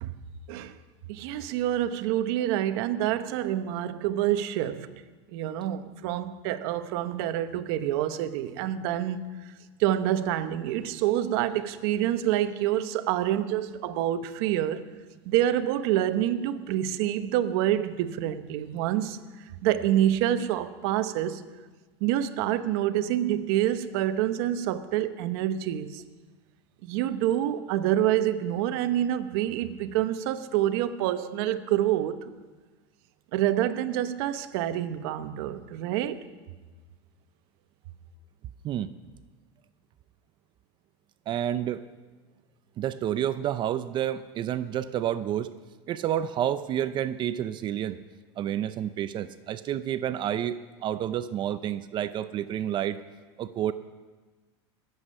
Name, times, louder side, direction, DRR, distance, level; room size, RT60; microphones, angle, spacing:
voice 1, 1.1-4.9 5.3-9.3 9.8-14.8 15.3-19.2 19.6-21.4 22.0-26.0 26.8-32.3 33.3-36.2, right 12 dB, 65° right, 10 dB, 1.0 m, -27 dB
voice 2, 41.3-41.8 42.8-45.5 45.9-48.0 48.4-53.0 53.4-53.7, right 11 dB, 35° right, 13 dB, 0.5 m, -29 dB
22.5 x 8.2 x 5.4 m, 1.3 s
supercardioid pair, 135°, 14 cm